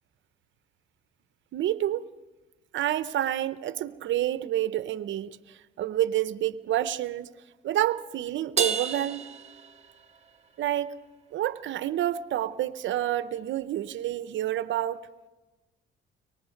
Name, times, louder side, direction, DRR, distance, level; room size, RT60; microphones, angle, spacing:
voice 1, 1.5-2.0 2.7-7.3 7.6-9.2 10.6-10.9 11.3-15.0, right 12 dB, 70° right, 14 dB, 0.7 m, -28 dB
Crash cymbal, 8.6-10.3, right 6 dB, 35° right, 1.7 m, -31 dB
24.0 x 23.5 x 5.2 m, 1.2 s
cardioid pair, 90°, 20 cm